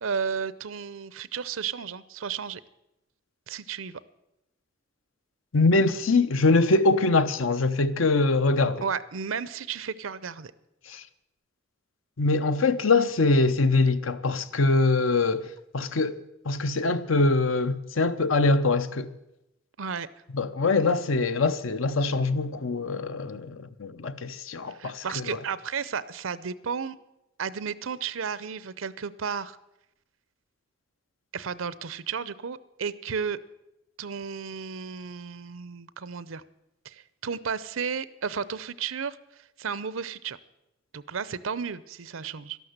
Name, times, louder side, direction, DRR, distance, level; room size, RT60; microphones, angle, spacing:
voice 1, 0.0-2.6 3.5-4.0 8.8-10.5 19.8-20.1 24.7-27.0 27.4-29.6 31.3-33.4 34.0-36.4 36.8-39.2 39.6-40.4 40.9-42.6, right 6 dB, 85° right, 0.7 m, -33 dB
voice 2, 5.5-8.8 10.9-11.0 12.2-19.1 20.3-25.4, left 3 dB, 85° left, 0.8 m, -23 dB
12.5 x 12.0 x 7.9 m
head